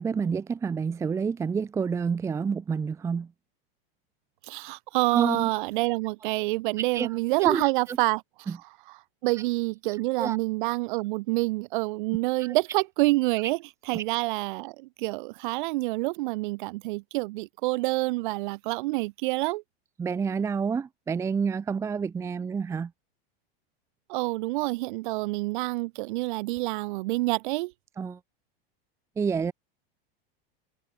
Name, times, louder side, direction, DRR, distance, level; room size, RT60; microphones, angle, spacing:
voice 1, 0.0-3.3 5.1-5.5 6.9-7.1 7.4-8.0 8.5-8.6 10.2-10.4 12.4-12.5 13.9-14.0 20.0-22.9 28.0-28.2 29.2-29.5, right 6 dB, 10° right, 0.7 m, -28 dB
voice 2, 4.5-8.2 9.2-13.6 13.9-19.6 24.1-27.7, right 22 dB, 60° right, 2.1 m, -27 dB
supercardioid pair, 170°, 29 cm